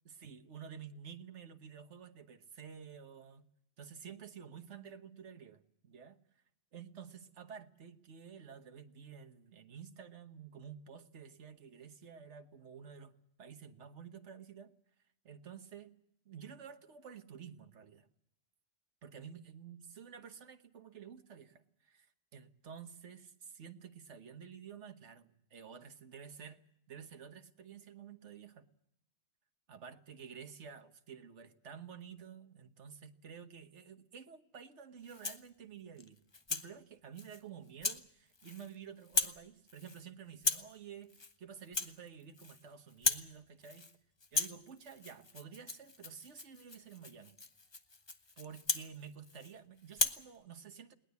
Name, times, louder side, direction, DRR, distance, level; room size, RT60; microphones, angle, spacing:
voice 1, 0.0-3.5 3.8-6.2 6.7-13.1 13.4-14.7 15.2-15.9 16.2-18.1 19.0-26.6 26.9-28.7 29.7-36.2 36.5-43.9 44.3-47.3 48.4-50.9, right 7 dB, 80° right, 7 dB, 1.5 m, -51 dB
Rattle (instrument), 35.0-35.5 36.0-36.7 37.2-37.4 37.8-38.0 38.3-38.8 39.0-39.4 39.7-40.0 40.4-40.7 41.1-41.3 41.6-42.6 42.9-43.3 43.6-43.9 44.2-49.5 49.9-50.2, left 3 dB, 25° left, 0.9 m, -37 dB
21.0 x 18.5 x 8.3 m, 0.77 s
omnidirectional pair, 1.2 m